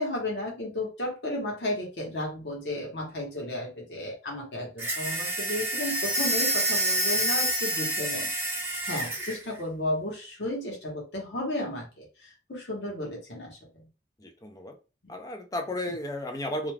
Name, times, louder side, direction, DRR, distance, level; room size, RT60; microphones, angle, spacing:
voice 1, 0.0-8.3 8.6-13.6, left 1 dB, 85° left, -2 dB, 1.0 m, -33 dB
sound 1, 4.8-9.4, right 1 dB, 15° right, 0.8 m, -28 dB
voice 2, 14.2-14.8 15.1-16.7, left 1 dB, 20° left, 4 dB, 0.4 m, -33 dB
2.4 x 2.2 x 3.2 m, 0.32 s
head